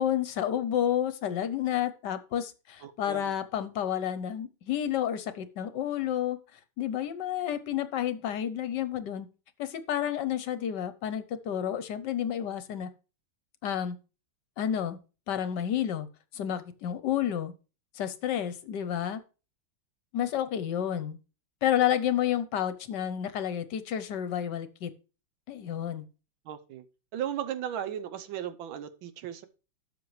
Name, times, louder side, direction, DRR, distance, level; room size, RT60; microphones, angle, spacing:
voice 1, 0.0-9.3 9.6-12.9 13.6-14.0 14.6-15.0 15.3-16.1 16.3-17.5 17.9-19.2 20.1-21.2 21.6-24.9 25.5-26.0, left 10 dB, 70° left, 13 dB, 1.2 m, -30 dB
voice 2, 2.8-3.2 26.4-26.8 27.1-29.5, right 10 dB, 75° right, 11 dB, 1.5 m, -36 dB
12.5 x 7.0 x 3.1 m, 0.34 s
omnidirectional pair, 2.2 m